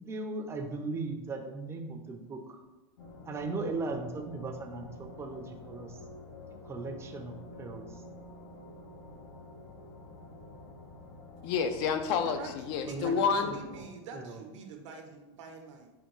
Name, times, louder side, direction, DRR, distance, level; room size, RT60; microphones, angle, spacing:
voice 1, 0.1-2.6 3.3-6.0 6.6-8.0 12.9-13.1 13.4-13.6 14.1-14.4, right 3 dB, 15° right, 4 dB, 0.4 m, -38 dB
sound 1, 3.0-13.9, left 1 dB, 85° left, 0.9 m, -48 dB
voice 2, 11.4-13.5, left 6 dB, 60° left, 7 dB, 0.4 m, -29 dB
voice 3, 12.1-12.5 12.9-15.9, right 4 dB, 80° right, 4 dB, 0.6 m, -45 dB
3.5 x 2.2 x 3.0 m, 1.1 s
supercardioid pair, 120°, 15 cm